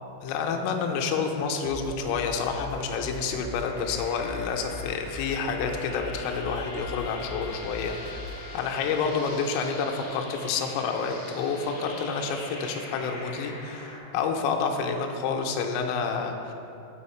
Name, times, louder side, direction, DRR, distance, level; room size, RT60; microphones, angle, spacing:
voice 1, 0.2-16.5, left 5 dB, 85° left, 3 dB, 3.1 m, -29 dB
sound 1, 1.6-8.5, left 3 dB, 85° right, 2.8 m, -40 dB
Wind instrument woodwind instrument, 2.4-10.2, left 4 dB, 70° right, 3.2 m, -47 dB
sound 2, 3.2-14.0, left 1 dB, 60° left, 2.5 m, -44 dB
6.4 x 5.5 x 4.2 m, 2.9 s
omnidirectional pair, 5.8 m